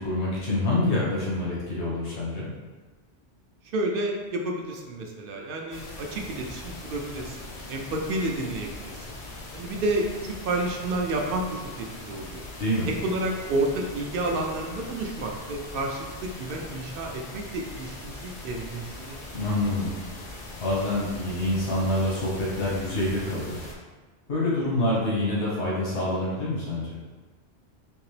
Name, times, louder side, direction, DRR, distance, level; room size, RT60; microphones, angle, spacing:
voice 1, 0.0-2.5 12.6-12.9 19.3-19.9 20.6-23.6 24.3-27.0, left 1 dB, 85° left, -6 dB, 1.3 m, -26 dB
voice 2, 3.7-9.2 9.5-12.5 12.8-19.2, right 2 dB, 65° right, 1 dB, 0.7 m, -30 dB
sound 1, 5.7-23.7, left 2 dB, 45° left, 0.6 m, -41 dB
3.5 x 2.8 x 3.1 m, 1.3 s
omnidirectional pair, 1.1 m